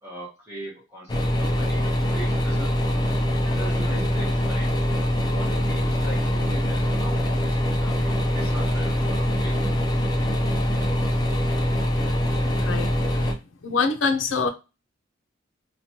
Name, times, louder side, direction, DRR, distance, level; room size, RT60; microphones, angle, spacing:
voice 1, 0.0-2.9 3.4-4.7 5.2-9.7, right 1 dB, 15° right, -6 dB, 0.9 m, -40 dB
sound 1, 1.1-13.3, equal, 20° left, 0.4 m, -23 dB
voice 2, 13.6-14.5, left 4 dB, 80° left, 6 dB, 0.5 m, -24 dB
2.9 x 2.2 x 2.8 m, 0.28 s
head